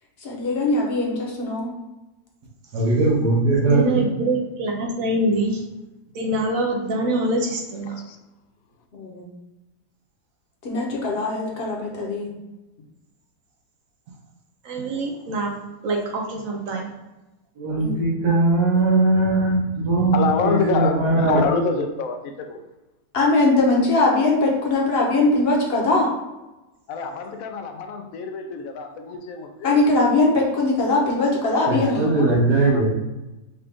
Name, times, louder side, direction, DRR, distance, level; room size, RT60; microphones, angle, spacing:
voice 1, 0.2-1.7 8.9-9.3 10.6-12.3 17.8-18.0 23.1-26.1 29.6-32.1, left 2 dB, 45° left, -2 dB, 1.1 m, -21 dB
voice 2, 2.7-4.0 17.6-21.4 31.7-32.9, right 2 dB, 85° right, -8 dB, 1.8 m, -20 dB
voice 3, 3.6-5.6 6.1-8.0 14.6-15.6 15.8-16.9, right 1 dB, 65° right, 1 dB, 1.0 m, -25 dB
voice 4, 20.1-22.6 26.9-29.8 31.6-32.9, left 5 dB, 70° left, 5 dB, 0.9 m, -27 dB
5.6 x 2.5 x 3.5 m, 1.0 s
omnidirectional pair, 1.7 m